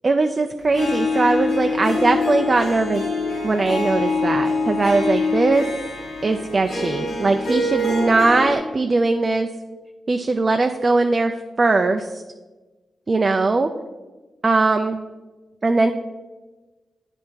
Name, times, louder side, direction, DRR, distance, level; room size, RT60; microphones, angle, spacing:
voice 1, 0.0-3.0 3.4-5.7 6.2-9.5 10.1-12.2 13.1-13.7 14.4-15.0 15.6-15.9, right 3 dB, 45° right, 5 dB, 0.4 m, -20 dB
Harp, 0.7-8.6, left 3 dB, 80° left, 2.0 m, -24 dB
9.1 x 3.5 x 4.4 m, 1.2 s
supercardioid pair, 45°, 0 cm